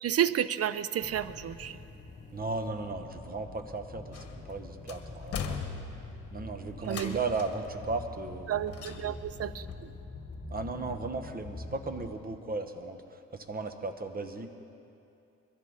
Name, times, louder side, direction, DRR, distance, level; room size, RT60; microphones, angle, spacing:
voice 1, 0.0-1.8 6.9-7.2 8.5-9.9, right 10 dB, 55° right, 15 dB, 0.6 m, -31 dB
sound 1, 1.0-12.1, left 3 dB, 35° left, 1.8 m, -45 dB
voice 2, 2.3-5.6 6.3-8.5 8.8-8.9 10.5-14.5, right 3 dB, 30° right, 7 dB, 1.2 m, -36 dB
sound 2, 4.1-4.5 4.9-6.2 6.8-7.7 8.7-9.4 9.7-9.8, left 6 dB, 50° left, 1.4 m, -39 dB
22.5 x 14.5 x 4.1 m, 2.7 s
cardioid pair, 90°, 30 cm